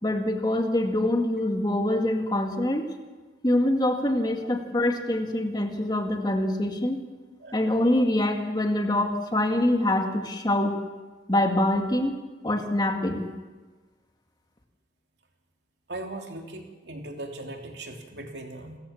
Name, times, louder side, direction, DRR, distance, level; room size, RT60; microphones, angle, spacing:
voice 1, 0.0-2.9 3.4-7.0 7.5-10.8 11.3-12.1 12.4-13.3, left 1 dB, 25° left, 4 dB, 2.0 m, -25 dB
voice 2, 7.4-7.7 15.9-18.8, right 2 dB, 70° right, 3 dB, 3.1 m, -39 dB
28.0 x 14.5 x 7.3 m, 1.3 s
head